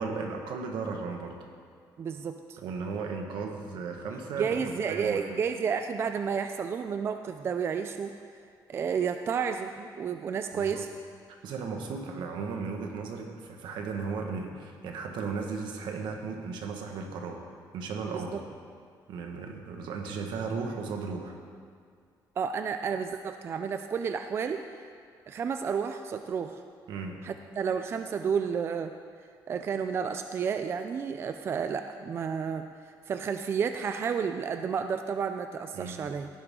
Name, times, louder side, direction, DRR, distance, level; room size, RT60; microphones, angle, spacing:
voice 1, 0.0-1.4 2.6-4.6 4.9-5.3 10.5-10.9 11.4-17.4 17.7-18.4 19.1-21.4 26.9-27.2 35.7-36.0, right 4 dB, 75° right, 3 dB, 1.6 m, -35 dB
voice 2, 2.0-2.6 4.4-8.1 8.7-10.9 18.1-18.4 22.4-24.6 25.3-26.6 27.2-28.9 29.5-32.7 33.1-36.3, right 6 dB, 30° right, 7 dB, 0.4 m, -31 dB
15.5 x 11.0 x 3.8 m, 2.2 s
cardioid pair, 175°, 8 cm